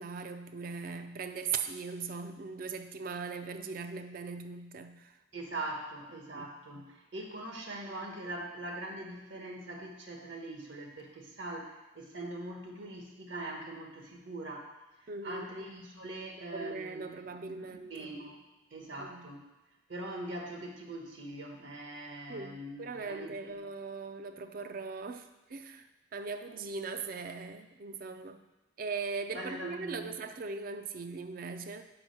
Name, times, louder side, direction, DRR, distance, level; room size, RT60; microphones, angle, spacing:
voice 1, 0.0-5.1 6.3-6.5 6.8-6.9 15.1-15.5 16.5-18.1 19.0-19.3 22.3-25.9 26.1-28.4 28.8-31.9, right 4 dB, 45° right, 8 dB, 0.4 m, -39 dB
voice 2, 5.3-14.7 15.0-17.1 17.5-18.4 18.7-19.4 19.9-23.6 29.3-30.1, right 1 dB, 70° right, 1 dB, 1.2 m, -42 dB
5.1 x 5.0 x 6.2 m, 1.0 s
head